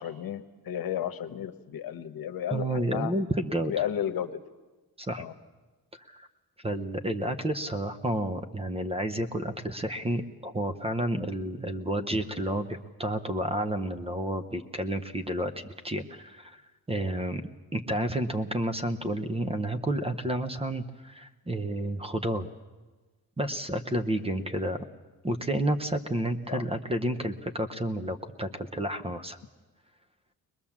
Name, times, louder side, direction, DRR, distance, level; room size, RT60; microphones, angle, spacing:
voice 1, 0.0-3.1 3.6-4.3 5.2-5.3 26.5-26.6, left 10 dB, 65° left, 9 dB, 1.2 m, -33 dB
voice 2, 2.5-3.9 5.0-5.2 5.9-6.3 6.6-16.6 16.9-17.4 17.7-22.5 23.4-24.8 25.2-29.4, right 1 dB, 15° right, 8 dB, 0.7 m, -30 dB
22.0 x 21.5 x 7.2 m, 1.2 s
wide cardioid pair, 170°, 38 cm